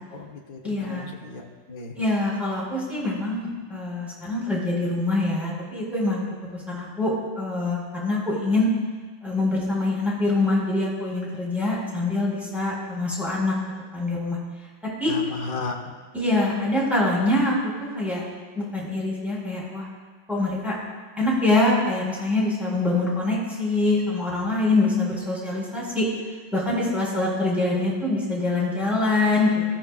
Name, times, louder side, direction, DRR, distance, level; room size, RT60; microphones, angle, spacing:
voice 1, 0.1-1.9 15.0-15.9, left 3 dB, 45° left, 0 dB, 1.6 m, -35 dB
voice 2, 0.6-1.1 2.0-6.2 6.5-8.7 9.2-13.5 13.9-14.4 15.0-15.1 16.1-17.5 17.8-18.2 18.5-19.9 20.3-20.8 21.2-26.0 26.5-29.6, left 2 dB, ahead, -6 dB, 4.5 m, -24 dB
19.0 x 13.5 x 2.5 m, 1.4 s
omnidirectional pair, 2.2 m